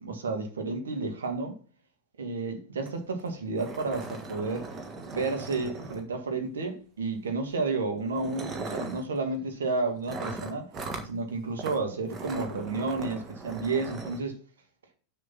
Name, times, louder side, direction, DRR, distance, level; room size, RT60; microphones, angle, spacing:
voice 1, 0.0-1.5 2.2-4.7 5.1-10.7 11.0-14.4, right 3 dB, 65° right, 1.8 m, -31 dB
sound 1, 2.9-3.0 3.2-3.3 3.6-6.3 7.3-7.5 8.1-9.1 10.1-11.1 11.6-11.8 12.1-14.2, right 3 dB, 25° right, 1.6 m, -38 dB
6.8 x 6.4 x 5.3 m
figure-of-eight pair, 90°, 0 cm